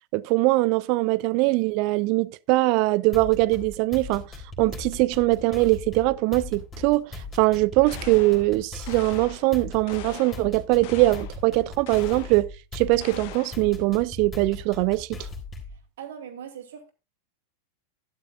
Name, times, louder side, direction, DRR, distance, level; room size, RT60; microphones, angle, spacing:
voice 1, 0.1-4.2 4.6-12.5 12.7-15.1, right 21 dB, 45° right, 0.4 m, -22 dB
sound 1, 3.1-15.8, left 3 dB, 20° left, 3.5 m, -39 dB
sound 2, 7.9-8.5 8.9-9.5 9.9-10.5 10.8-11.4 11.9-12.4 13.0-13.7, left 12 dB, 50° left, 1.1 m, -42 dB
voice 2, 15.7-16.9, right 8 dB, 60° right, 2.4 m, -41 dB
12.5 x 11.0 x 2.3 m
figure-of-eight pair, 90°, 0 cm